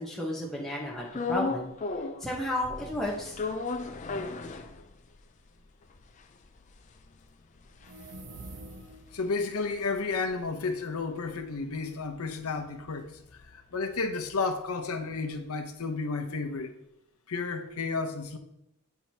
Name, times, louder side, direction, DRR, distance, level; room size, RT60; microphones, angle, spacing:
voice 1, 0.0-1.7 2.2-3.4, left 1 dB, ahead, 0.9 m, -33 dB
sound 1, 1.1-2.3 2.6-5.2 5.6-5.7 5.9-10.4 10.7-14.8, left 3 dB, 35° left, 0.4 m, -37 dB
sound 2, 7.7-9.3, right 2 dB, 50° right, 0.8 m, -45 dB
voice 2, 9.1-16.7 17.3-18.4, left 4 dB, 80° left, 0.8 m, -32 dB
9.0 x 4.5 x 2.8 m
head